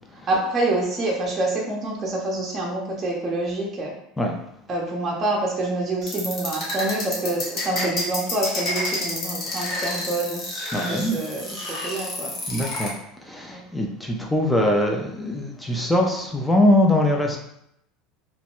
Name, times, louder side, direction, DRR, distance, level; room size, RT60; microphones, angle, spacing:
voice 1, 0.3-3.9 4.7-10.4 10.8-12.3 13.5-13.6, right 2 dB, 30° right, -3 dB, 0.7 m, -26 dB
sound 1, 6.0-12.9, left 2 dB, 45° left, 1.0 m, -29 dB
voice 2, 10.7-11.2 12.5-17.4, left 1 dB, 5° left, 0 dB, 0.5 m, -22 dB
2.9 x 2.2 x 3.0 m, 0.76 s
supercardioid pair, 115°, 0 cm